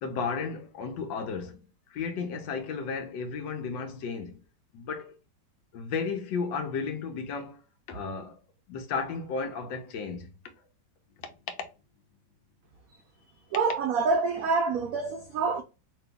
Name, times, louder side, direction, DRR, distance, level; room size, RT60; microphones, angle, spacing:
voice 1, 0.0-4.4 4.7-5.1 5.7-7.6 7.9-8.4 8.7-10.3 11.2-11.3, left 5 dB, 85° left, 1.5 m, -34 dB
voice 2, 13.5-15.6, right 4 dB, 80° right, 0.7 m, -26 dB
3.0 x 3.0 x 3.4 m
omnidirectional pair, 2.0 m